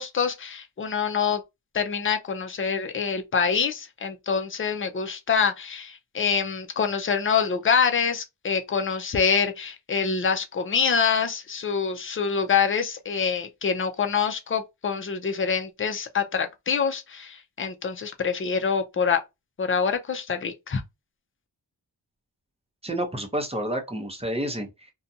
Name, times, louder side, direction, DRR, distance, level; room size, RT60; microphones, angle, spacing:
voice 1, 0.0-1.4 1.7-19.2 19.6-20.8, left 6 dB, 30° left, 0.5 m, -25 dB
voice 2, 22.8-24.9, right 1 dB, 15° right, 0.7 m, -30 dB
2.5 x 2.2 x 2.6 m
wide cardioid pair, 85°, 45 cm